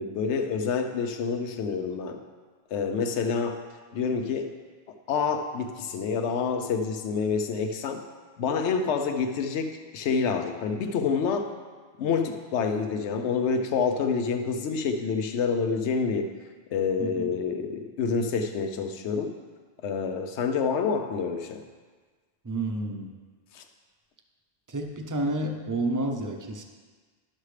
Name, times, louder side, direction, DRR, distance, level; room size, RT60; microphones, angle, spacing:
voice 1, 0.0-2.2 2.7-3.6 3.9-4.5 5.1-8.0 8.4-11.5 12.0-16.3 16.7-19.4 19.8-21.6 23.5-23.6, left 5 dB, 80° left, 6 dB, 1.0 m, -27 dB
voice 2, 17.0-17.3 22.4-23.1 24.7-26.6, right 2 dB, 20° right, 3 dB, 0.5 m, -30 dB
11.5 x 6.5 x 3.3 m, 1.4 s
omnidirectional pair, 1.1 m